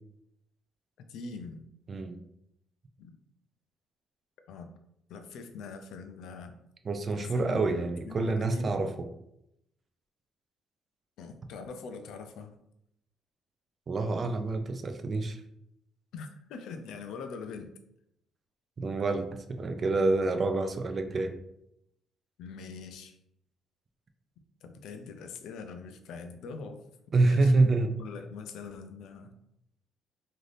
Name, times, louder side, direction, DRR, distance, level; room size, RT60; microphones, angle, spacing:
voice 1, 1.0-1.6 3.0-3.2 4.5-4.7 5.1-6.5 7.1-8.8 11.2-12.5 16.1-17.7 22.4-23.2 24.6-26.8 27.2-29.3, left 5 dB, 75° left, 6 dB, 0.4 m, -43 dB
voice 2, 1.9-2.2 6.8-9.1 13.9-15.4 18.8-21.4 27.1-27.9, right 3 dB, 35° right, 7 dB, 0.3 m, -27 dB
2.6 x 2.5 x 3.2 m, 0.79 s
cardioid pair, 135°, 0 cm